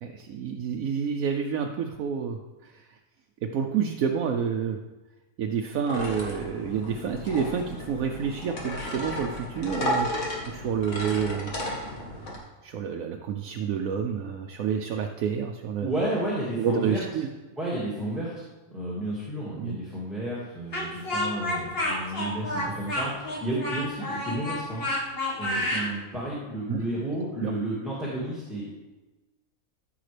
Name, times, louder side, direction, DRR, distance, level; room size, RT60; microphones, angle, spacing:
voice 1, 0.0-2.8 3.4-4.8 5.4-10.1 10.5-11.5 12.6-15.9 16.6-17.3 19.6-19.8 26.7-26.8 27.4-27.5, right 7 dB, 80° right, 3 dB, 1.0 m, -29 dB
sound 1, 5.9-12.4, left 1 dB, 80° left, 2.1 m, -33 dB
voice 2, 15.8-17.0 17.6-18.4 18.7-24.8 25.4-28.7, right 1 dB, ahead, -7 dB, 1.8 m, -32 dB
Speech, 20.7-25.9, left 1 dB, 45° left, 1.8 m, -29 dB
14.0 x 5.8 x 3.3 m, 1.1 s
omnidirectional pair, 1.4 m